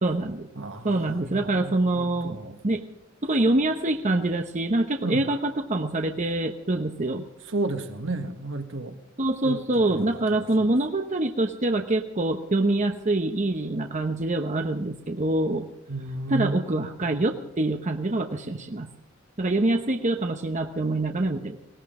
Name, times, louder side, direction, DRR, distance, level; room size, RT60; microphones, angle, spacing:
voice 1, 0.0-0.5 0.8-2.4 2.6-2.8 3.2-7.3 9.2-15.7 16.3-18.9 19.4-21.6, right 2 dB, 40° right, 1.0 m, -25 dB
voice 2, 0.6-2.6 5.0-5.2 7.5-8.9 9.4-9.6 9.9-10.7 15.9-16.9, right 2 dB, 70° right, 1.5 m, -33 dB
20.0 x 17.5 x 3.8 m
head